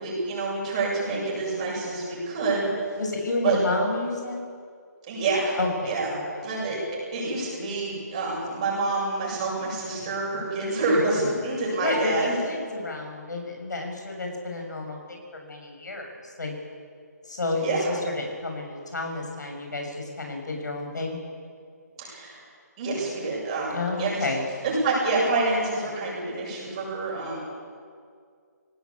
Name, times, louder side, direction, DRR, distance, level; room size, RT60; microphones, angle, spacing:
voice 1, 0.0-2.7 3.4-3.6 5.1-5.6 5.8-6.1 6.4-6.8 7.1-12.4 17.6-17.9 22.0-22.4 22.8-24.3 24.6-27.4, right 3 dB, 25° right, -4 dB, 7.5 m, -27 dB
voice 2, 3.0-4.4 5.6-5.9 6.3-6.4 11.8-16.5 17.2-21.2 23.7-24.4, left 2 dB, 85° left, 2 dB, 6.7 m, -30 dB
19.5 x 18.5 x 8.6 m, 2.1 s
hypercardioid pair, 175°, 10 cm